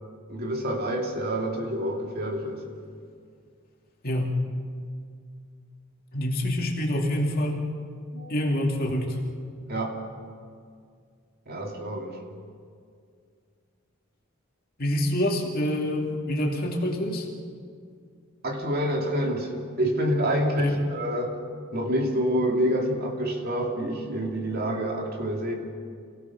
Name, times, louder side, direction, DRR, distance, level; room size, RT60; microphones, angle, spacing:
voice 1, 0.3-2.7 8.1-8.3 9.7-10.0 11.5-12.2 18.4-21.4 21.7-25.5, equal, 45° right, 1 dB, 2.6 m, -27 dB
voice 2, 4.0-4.4 6.1-7.6 8.3-9.2 14.8-17.3 20.6-20.8, left 1 dB, 45° left, 0 dB, 2.7 m, -26 dB
27.5 x 17.5 x 6.0 m, 2.2 s
head